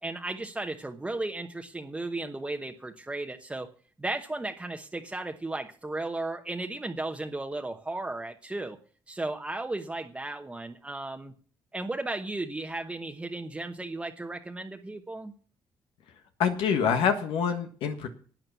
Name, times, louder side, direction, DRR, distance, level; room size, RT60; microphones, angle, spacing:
voice 1, 0.0-3.7 4.0-8.8 9.1-11.3 11.7-15.3, right 2 dB, 15° right, 4 dB, 1.1 m, -35 dB
voice 2, 16.4-18.1, left 7 dB, 90° left, 6 dB, 1.5 m, -26 dB
12.0 x 8.8 x 6.9 m, 0.43 s
cardioid pair, 110°, 9 cm